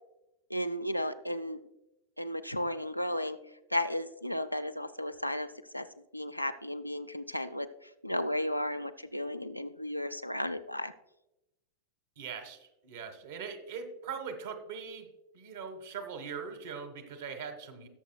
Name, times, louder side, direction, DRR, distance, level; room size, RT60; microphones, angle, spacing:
voice 1, 0.5-1.6 2.2-3.4 3.7-5.5 5.7-5.9 6.1-7.7 8.0-10.9, left 1 dB, 90° left, 8 dB, 0.5 m, -34 dB
voice 2, 12.2-15.1 15.3-17.9, right 6 dB, 55° right, 7 dB, 1.4 m, -41 dB
18.0 x 6.9 x 2.3 m, 0.92 s
figure-of-eight pair, 90°, 0 cm